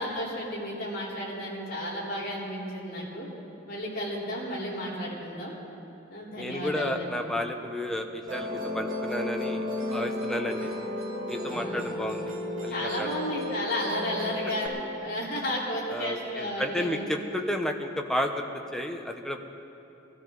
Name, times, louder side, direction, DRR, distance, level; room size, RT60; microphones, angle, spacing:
voice 1, 0.0-3.3 3.7-5.5 6.1-7.1 11.5-11.8 12.7-14.7 15.0-17.0, equal, 50° left, -6 dB, 3.8 m, -33 dB
voice 2, 6.4-10.7 11.3-12.2 12.6-13.1 15.9-18.4 18.7-19.4, left 1 dB, 5° left, 3 dB, 0.9 m, -32 dB
Musical instrument, 8.3-14.7, left 1 dB, 70° right, 3.2 m, -33 dB
21.0 x 14.0 x 3.9 m, 3.0 s
head